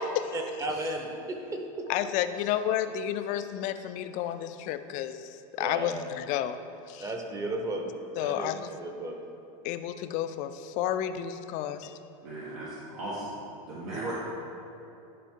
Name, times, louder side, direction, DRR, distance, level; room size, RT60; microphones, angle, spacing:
voice 1, 0.3-1.9 5.6-6.0 7.0-7.9 8.1-8.5 8.8-9.2, right 1 dB, 15° right, 3 dB, 0.8 m, -34 dB
voice 2, 1.9-5.2 5.6-6.6 6.9-7.1 8.2-8.7 9.6-11.9, left 11 dB, 45° left, 10 dB, 0.4 m, -31 dB
voice 3, 12.2-13.4 13.7-14.1, right 2 dB, 80° right, -7 dB, 1.5 m, -37 dB
10.5 x 4.6 x 3.7 m, 2.7 s
supercardioid pair, 140°, 18 cm